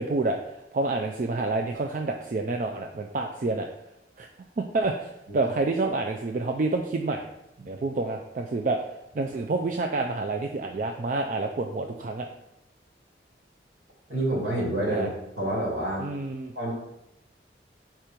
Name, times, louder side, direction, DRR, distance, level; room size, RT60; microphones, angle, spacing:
voice 1, 0.0-3.7 4.2-4.3 4.6-7.3 7.7-8.8 9.1-12.3 14.9-15.1 16.0-16.5, right 3 dB, 45° right, 3 dB, 0.4 m, -28 dB
voice 2, 14.1-15.1 15.4-16.1 16.5-16.7, right 1 dB, 70° right, -3 dB, 2.4 m, -28 dB
4.5 x 4.5 x 5.1 m, 0.88 s
head